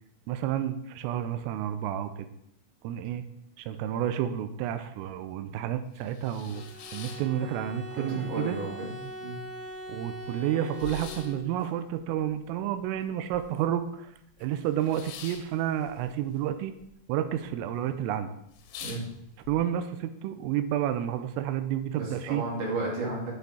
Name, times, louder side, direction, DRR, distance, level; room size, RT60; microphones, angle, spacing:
voice 1, 0.3-2.3 2.8-3.2 3.6-6.6 6.9-8.6 9.9-14.1 14.4-16.7 17.1-18.3 19.5-22.4, right 11 dB, 90° right, 9 dB, 3.3 m, -30 dB
sound 1, 6.0-8.0 8.3-9.0 9.4-9.5 9.7-13.8 14.1-16.9 17.1-17.7 18.1-18.2 18.5-19.6, left 8 dB, 80° left, 3.3 m, -46 dB
Bowed string instrument, 6.5-11.8, equal, 65° right, 3.7 m, -42 dB
voice 2, 8.0-9.4 18.8-19.1 21.9-23.3, right 2 dB, 45° right, -5 dB, 4.5 m, -33 dB
9.3 x 8.0 x 4.9 m, 0.76 s
omnidirectional pair, 5.8 m